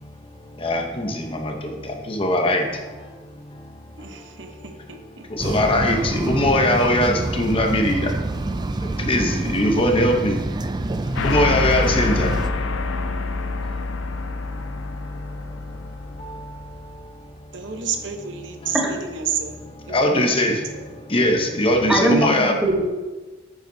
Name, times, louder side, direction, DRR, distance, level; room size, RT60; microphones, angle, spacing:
voice 1, 0.6-1.7 2.1-2.6 5.3-8.1 9.0-10.4 11.2-12.3 19.9-20.6 21.1-22.6, left 1 dB, 30° left, 3 dB, 0.8 m, -20 dB
voice 2, 4.0-5.3 17.5-19.5 19.8-20.7, right 7 dB, 70° right, 5 dB, 1.0 m, -31 dB
sound 1, 5.4-12.5, right 2 dB, 20° right, 0.3 m, -27 dB
sound 2, 11.2-17.0, left 3 dB, 80° left, 0.5 m, -27 dB
voice 3, 21.9-22.8, right 1 dB, 5° right, -2 dB, 1.2 m, -20 dB
8.9 x 7.9 x 2.7 m, 1.3 s
head